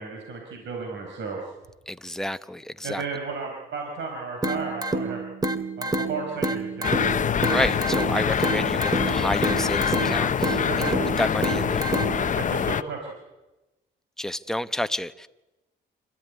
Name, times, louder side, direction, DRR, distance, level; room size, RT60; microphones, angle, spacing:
voice 1, 0.0-1.4 2.8-5.2 5.8-7.0 10.7-11.0 12.3-13.1, right 4 dB, 70° right, 1 dB, 5.0 m, -33 dB
voice 2, 1.9-3.0 7.5-11.9 14.2-15.3, left 1 dB, ahead, 11 dB, 0.9 m, -30 dB
sound 1, 4.4-12.4, right 2 dB, 20° right, 2.2 m, -29 dB
sound 2, 6.8-12.8, left 7 dB, 40° left, 0.8 m, -25 dB
26.5 x 15.0 x 9.6 m, 1.0 s
cardioid pair, 90°, 20 cm